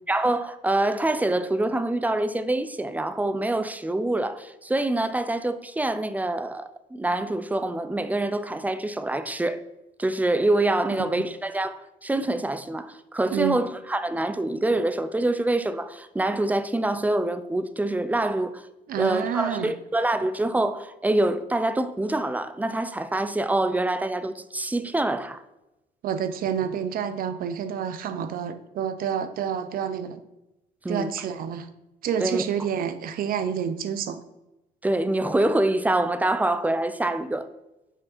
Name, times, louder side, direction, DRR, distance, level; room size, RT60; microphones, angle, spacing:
voice 1, 0.1-9.6 10.0-18.6 19.0-25.4 30.8-31.1 32.2-32.4 34.8-37.5, right 2 dB, 10° right, 0.4 m, -25 dB
voice 2, 10.9-11.3 13.3-13.7 18.9-19.7 26.0-30.2 30.9-31.7 32.0-34.2, right 8 dB, 60° right, 0.6 m, -29 dB
6.2 x 5.1 x 4.3 m
cardioid pair, 110°, 17 cm